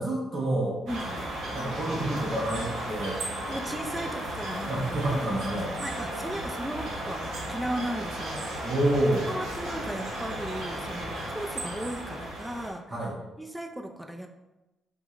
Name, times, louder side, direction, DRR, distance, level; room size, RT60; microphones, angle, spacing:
voice 1, 0.0-0.8 1.5-3.2 4.7-5.7 8.6-9.3 12.9-13.2, right 1 dB, 40° right, -4 dB, 0.7 m, -28 dB
voice 2, 0.9-1.3 3.5-5.2 5.8-8.7 9.3-12.9 13.4-14.3, right 1 dB, 5° right, 4 dB, 0.3 m, -36 dB
sound 1, 0.9-12.7, right 1 dB, 75° right, 0.8 m, -35 dB
5.9 x 2.1 x 2.4 m, 1.0 s
cardioid pair, 90°, 0 cm